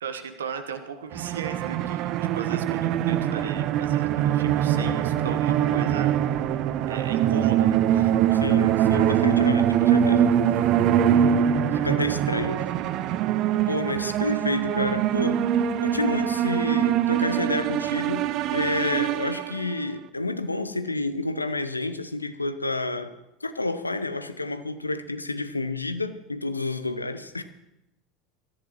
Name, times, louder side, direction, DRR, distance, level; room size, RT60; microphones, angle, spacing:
voice 1, 0.0-6.2 6.9-8.1, right 6 dB, 75° right, 9 dB, 1.2 m, -36 dB
sound 1, 1.1-19.9, right 10 dB, 50° right, 0.6 m, -23 dB
voice 2, 8.3-10.4 11.4-12.7 13.7-15.4 15.8-23.1 23.4-27.4, left 2 dB, 90° left, 12 dB, 0.7 m, -29 dB
23.0 x 14.0 x 3.0 m, 0.91 s
figure-of-eight pair, 75°, 0 cm